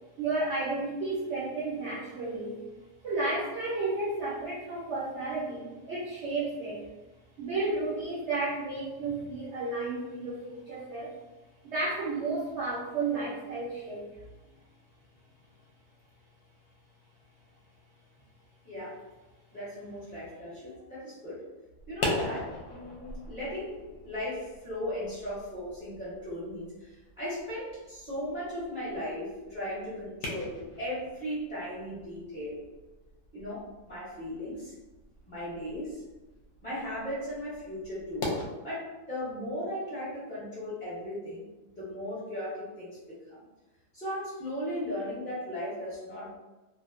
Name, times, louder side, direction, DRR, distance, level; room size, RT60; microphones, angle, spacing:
voice 1, 0.2-2.6 3.0-6.8 7.4-11.1 11.6-14.1, right 3 dB, 65° right, -6 dB, 0.7 m, -32 dB
voice 2, 18.6-19.0 19.5-21.4 21.9-23.8 24.0-32.6 33.3-34.7 35.3-36.0 36.6-38.3 38.6-43.4 43.9-46.4, left 1 dB, 35° left, -10 dB, 0.9 m, -37 dB
sound 1, 21.8-38.5, left 2 dB, 70° left, 1.0 m, -41 dB
2.7 x 2.0 x 2.4 m, 1.1 s
omnidirectional pair, 1.7 m